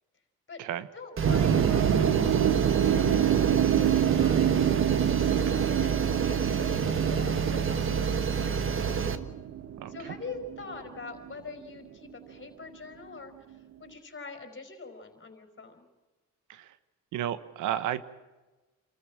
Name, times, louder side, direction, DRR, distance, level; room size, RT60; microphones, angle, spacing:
voice 1, 0.9-9.1 9.9-15.9, left 4 dB, 40° left, 6 dB, 4.8 m, -44 dB
sound 1, 1.2-9.2, right 6 dB, 45° right, 1.5 m, -28 dB
sound 2, 1.2-11.4, right 10 dB, 60° right, 1.3 m, -27 dB
voice 2, 9.8-10.1 16.5-16.7 17.1-18.0, right 11 dB, 90° right, 15 dB, 1.2 m, -33 dB
27.5 x 14.0 x 7.4 m, 1.2 s
cardioid pair, 90°, 30 cm